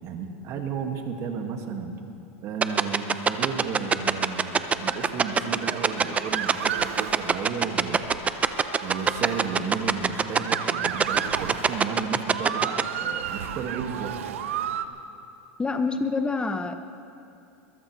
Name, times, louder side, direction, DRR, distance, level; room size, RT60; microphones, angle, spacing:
voice 1, 0.0-1.9 2.4-8.2 8.8-14.1, right 6 dB, 45° right, 3 dB, 2.0 m, -33 dB
sound 1, 2.6-12.8, right 6 dB, 20° right, 0.6 m, -21 dB
Motor vehicle (road) / Siren, 3.8-14.8, right 9 dB, 80° right, 0.8 m, -35 dB
voice 2, 15.6-16.8, left 4 dB, 15° left, 8 dB, 0.7 m, -26 dB
22.0 x 19.5 x 3.3 m, 2.7 s
hypercardioid pair, 115°, 7 cm